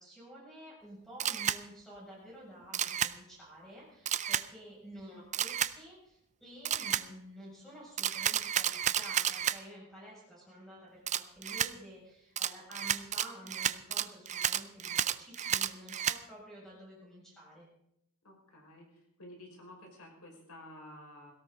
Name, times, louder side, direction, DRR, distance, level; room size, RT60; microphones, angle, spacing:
voice 1, 0.0-17.7, equal, ahead, -6 dB, 7.2 m, -51 dB
Camera, 1.2-1.6 2.7-3.1 4.1-4.4 5.3-5.7 6.6-7.0 8.0-9.6 11.1-11.7 12.4-16.2, right 9 dB, 30° right, 0.5 m, -31 dB
voice 2, 18.2-18.9 19.2-21.3, left 1 dB, 75° left, 0 dB, 5.6 m, -51 dB
17.5 x 17.0 x 4.0 m, 0.78 s
head